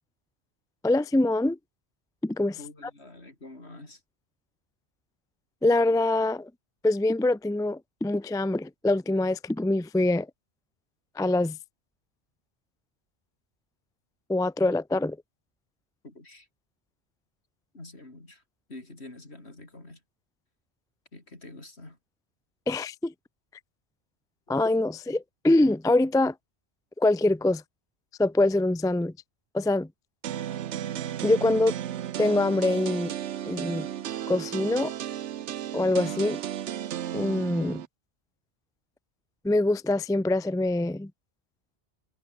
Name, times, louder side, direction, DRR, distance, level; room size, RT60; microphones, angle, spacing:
voice 1, 0.8-1.6 2.2-2.6 5.6-6.5 6.8-10.3 11.2-11.6 14.3-15.2 22.7-23.1 24.5-26.3 27.0-27.6 28.2-29.1 29.5-29.9 31.2-31.7 32.2-33.1 33.4-33.9 34.3-34.9 35.7-36.4 37.1-37.8 39.4-41.1, left 2 dB, 5° left, 0.3 m, -24 dB
voice 2, 2.6-4.0 16.0-16.5 17.7-18.4 18.7-20.0 21.1-22.0, left 2 dB, 70° left, 5.1 m, -46 dB
sound 1, 30.2-37.9, right 11 dB, 85° right, 1.0 m, -34 dB
omnidirectional pair, 1.2 m